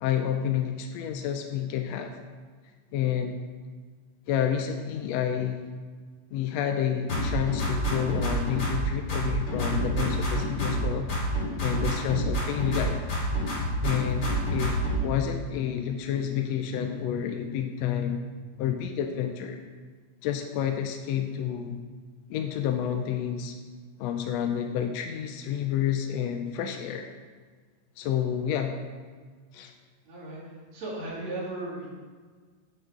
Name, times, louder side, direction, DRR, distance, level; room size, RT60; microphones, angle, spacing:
voice 1, 0.0-2.2 2.9-3.4 4.3-5.7 6.3-11.1 11.6-13.0 13.8-18.2 18.6-19.6 20.2-21.8 22.3-23.5 24.0-27.1 28.0-28.8 29.5-29.7, left 9 dB, 80° left, 5 dB, 1.6 m, -29 dB
sound 1, 7.1-8.8 9.1-10.8 11.1-12.8 13.1-15.0, equal, 40° left, 3.0 m, -28 dB
voice 2, 30.0-30.4 30.7-31.9, right 2 dB, 60° right, -6 dB, 3.6 m, -35 dB
9.0 x 6.2 x 5.0 m, 1.5 s
omnidirectional pair, 3.4 m